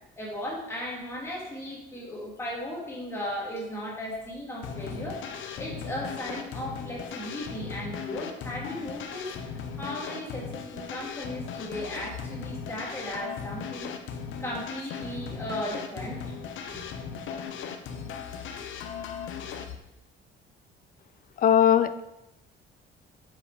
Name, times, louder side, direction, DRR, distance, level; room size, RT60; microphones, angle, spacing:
voice 1, 0.2-9.3 9.8-13.9 14.4-16.2 16.7-17.1, equal, 10° left, -4 dB, 3.1 m, -36 dB
sound 1, 4.6-19.8, left 6 dB, 75° left, 1.0 m, -37 dB
voice 2, 21.4-22.0, left 9 dB, 45° left, 13 dB, 0.6 m, -20 dB
7.6 x 7.3 x 5.2 m, 0.92 s
cardioid pair, 145°, 20 cm